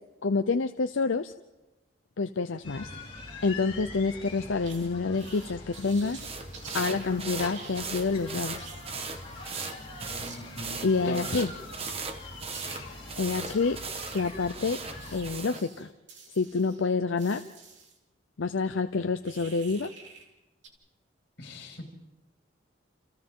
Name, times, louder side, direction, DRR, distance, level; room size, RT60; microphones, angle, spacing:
voice 1, 0.2-1.3 2.2-2.9 3.4-6.2 6.7-8.7 10.8-11.5 13.2-13.8 14.1-14.8 15.1-15.9 16.4-17.4 18.4-19.9, left 4 dB, 90° left, 8 dB, 0.7 m, -28 dB
sound 1, 2.6-15.3, left 2 dB, 30° left, 4.8 m, -44 dB
sound 2, 4.6-4.9 5.2-7.1 7.5-8.1 8.6-9.7 10.0-10.4 10.7-12.0 12.3-12.7 12.9-18.0 19.2-20.3 20.6-20.7, right 5 dB, 75° right, 3.4 m, -48 dB
sound 3, 6.2-15.7, right 4 dB, 30° right, 1.3 m, -39 dB
voice 2, 10.1-11.2 21.4-21.8, left 1 dB, 60° left, 1 dB, 5.3 m, -40 dB
29.5 x 28.5 x 3.8 m, 1.1 s
head